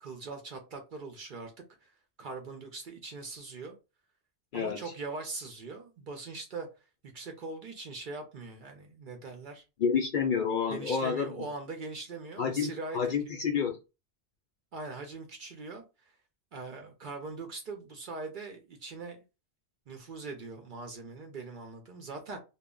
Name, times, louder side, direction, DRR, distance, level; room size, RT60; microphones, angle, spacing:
voice 1, 0.0-1.5 1.8-1.9 2.2-3.8 4.5-6.7 7.0-9.6 10.7-13.3 14.7-16.2 16.5-19.2 19.9-22.4, right 3 dB, 55° right, 0.6 m, -41 dB
voice 2, 9.8-11.3 12.4-13.8, left 6 dB, 60° left, 0.6 m, -29 dB
2.1 x 2.0 x 3.6 m
omnidirectional pair, 1.2 m